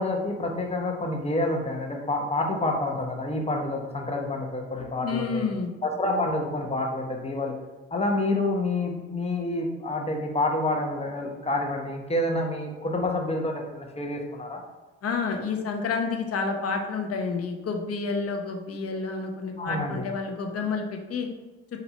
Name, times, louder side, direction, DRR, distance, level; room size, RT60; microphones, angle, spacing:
voice 1, 0.0-5.4 5.8-7.5 7.9-14.6 19.6-20.0, left 2 dB, 20° left, 1 dB, 1.0 m, -28 dB
voice 2, 4.9-5.7 6.1-6.3 15.0-21.3, left 4 dB, 45° left, 4 dB, 0.9 m, -29 dB
4.3 x 2.7 x 4.3 m, 1.2 s
hypercardioid pair, 60°, 34 cm